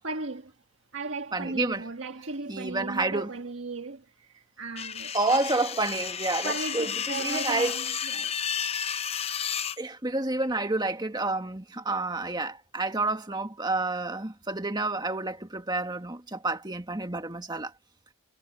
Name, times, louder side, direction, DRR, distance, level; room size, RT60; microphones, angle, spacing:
voice 1, 0.0-0.5 0.9-5.2 6.4-8.3, right 3 dB, 65° right, 1.6 m, -36 dB
voice 2, 1.3-1.9 2.5-3.3 5.1-7.8 9.8-17.7, right 2 dB, 20° right, 1.9 m, -29 dB
sound 1, 4.8-9.8, left 8 dB, 30° left, 0.6 m, -32 dB
head